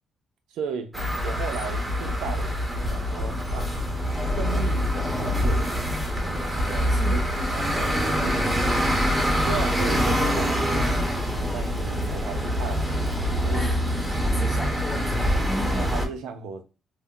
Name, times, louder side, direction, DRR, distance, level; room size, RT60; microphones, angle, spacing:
voice 1, 0.5-0.9 1.2-3.7 4.3-5.8 6.7-8.5 9.4-13.0 13.4-13.7 15.7-16.6, right 6 dB, 90° right, 0.6 m, -36 dB
sound 1, 0.9-16.1, equal, 10° right, 1.0 m, -25 dB
voice 2, 6.9-7.4 13.5-15.9, left 1 dB, 15° left, 0.5 m, -35 dB
sound 2, 7.3-13.7, left 13 dB, 30° right, 1.2 m, -38 dB
2.7 x 2.1 x 3.6 m
cardioid pair, 90°, 0 cm